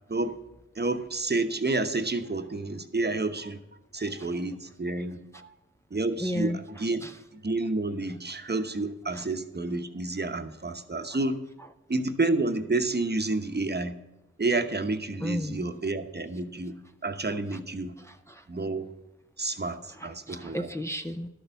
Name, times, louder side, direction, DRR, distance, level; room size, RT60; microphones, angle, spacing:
voice 1, 0.8-3.6 3.9-5.5 5.9-7.0 7.3-11.4 11.9-13.9 14.4-16.7 17.0-17.9 18.5-18.9 19.4-20.7, right 2 dB, 35° right, 8 dB, 1.0 m, -29 dB
voice 2, 6.2-6.6 7.0-7.1 9.1-9.2 15.2-15.7 18.0-18.4 20.0-21.3, equal, 10° left, 6 dB, 0.6 m, -33 dB
12.0 x 6.8 x 5.8 m, 1.0 s
wide cardioid pair, 55°, 29 cm